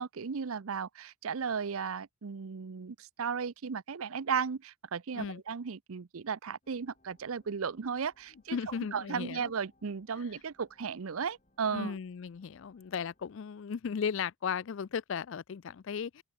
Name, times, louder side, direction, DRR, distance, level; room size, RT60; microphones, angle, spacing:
voice 1, 0.0-12.0, right 6 dB, 70° right, 0.6 m, -35 dB
sound 1, 6.6-13.3, left 1 dB, 30° left, 3.9 m, -70 dB
voice 2, 8.5-9.5 11.7-16.2, left 6 dB, 60° left, 0.4 m, -36 dB
open air
head